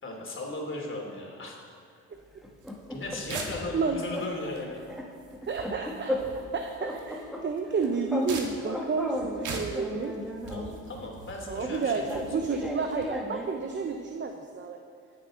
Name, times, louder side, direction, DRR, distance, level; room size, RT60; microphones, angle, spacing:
voice 1, 0.0-1.6 1.9-2.0 2.9-4.8 10.5-12.3, left 2 dB, 40° left, 0 dB, 3.0 m, -37 dB
sound 1, 2.4-3.8 4.1-4.3 4.6-6.5 6.8-8.3 8.6-10.8 11.6-13.6, left 1 dB, ahead, 1.5 m, -36 dB
sound 2, 2.6-13.1, right 4 dB, 80° right, 1.6 m, -44 dB
voice 2, 5.5-10.2 11.5-14.8, right 4 dB, 40° right, 4 dB, 0.8 m, -31 dB
20.5 x 6.8 x 3.9 m, 2.1 s
cardioid pair, 90°, 30 cm